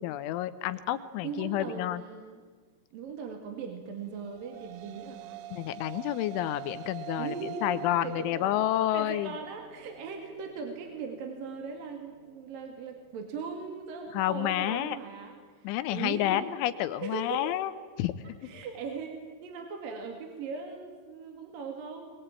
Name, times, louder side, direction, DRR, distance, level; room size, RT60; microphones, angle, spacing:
voice 1, 0.0-2.0 5.5-7.3 7.6-9.3 14.1-15.0 15.6-17.7 18.0-18.1, left 13 dB, 80° left, 12 dB, 3.1 m, -29 dB
voice 2, 0.9-2.4 2.9-5.4 7.2-7.7 8.0-8.6 8.9-16.4 17.0-17.5 18.4-22.1, right 5 dB, 55° right, 4 dB, 3.2 m, -39 dB
sound 1, 4.1-12.7, right 13 dB, 85° right, 3.5 m, -45 dB
22.0 x 21.5 x 8.9 m, 1.5 s
omnidirectional pair, 5.8 m